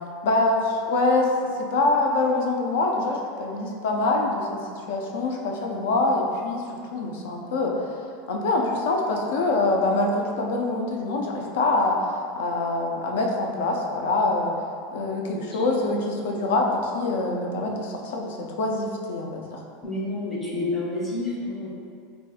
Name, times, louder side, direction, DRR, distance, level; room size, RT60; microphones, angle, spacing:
voice 1, 0.2-8.0 8.3-12.0 12.4-14.5 14.9-19.6, left 2 dB, 75° left, 1 dB, 0.4 m, -25 dB
voice 2, 15.2-15.6 19.8-21.7, left 2 dB, 15° left, -6 dB, 0.7 m, -29 dB
4.0 x 2.3 x 2.4 m, 2.3 s
supercardioid pair, 155°, 0 cm